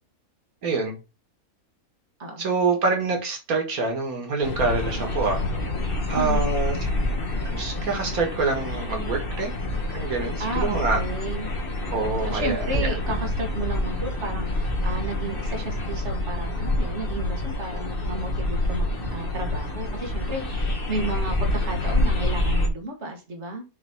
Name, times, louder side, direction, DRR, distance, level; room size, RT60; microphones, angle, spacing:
voice 1, 0.6-0.9 2.4-5.4 6.1-6.8 7.4-9.5 9.8-11.0 11.9-13.0, right 4 dB, 90° right, 2.1 m, -26 dB
sound 1, 4.4-22.7, left 1 dB, 40° left, 1.6 m, -27 dB
voice 2, 6.1-6.5 10.4-11.5 12.3-23.6, right 2 dB, 50° right, 2.0 m, -33 dB
7.2 x 3.1 x 5.9 m
omnidirectional pair, 1.5 m